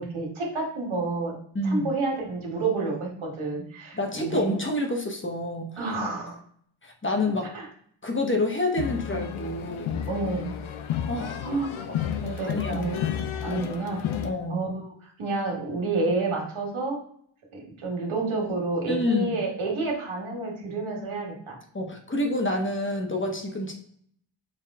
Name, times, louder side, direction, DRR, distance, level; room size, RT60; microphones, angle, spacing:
voice 1, 0.0-1.3 1.6-4.6 5.8-6.4 7.5-7.7 10.1-10.5 11.4-11.8 12.2-13.0 13.4-14.0 14.5-17.0 17.5-21.6, right 3 dB, 90° right, -1 dB, 1.4 m, -29 dB
voice 2, 1.5-1.9 3.9-5.7 6.8-7.5 8.0-10.0 11.1-11.4 11.9-12.0 12.4-12.9 13.5-13.7 14.2-14.6 18.9-19.4 21.7-23.7, left 1 dB, 25° left, 3 dB, 0.9 m, -28 dB
sound 1, 8.8-14.3, left 9 dB, 85° left, 0.6 m, -32 dB
4.8 x 2.3 x 3.5 m, 0.64 s
cardioid pair, 60°, 47 cm